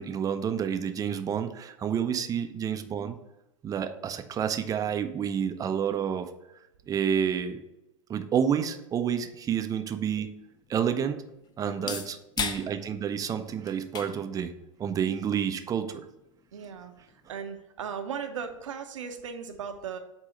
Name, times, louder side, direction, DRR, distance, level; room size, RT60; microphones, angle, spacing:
voice 1, 0.0-3.2 3.6-6.3 6.9-7.6 8.1-10.3 10.7-11.3 11.6-16.1, right 8 dB, 20° right, 8 dB, 0.5 m, -29 dB
sound 1, 9.3-17.3, left 6 dB, 25° left, 0.6 m, -41 dB
voice 2, 11.7-12.0 16.5-16.9 17.3-20.0, right 7 dB, 70° right, 6 dB, 0.8 m, -37 dB
7.9 x 2.8 x 5.0 m, 0.91 s
figure-of-eight pair, 95°, 17 cm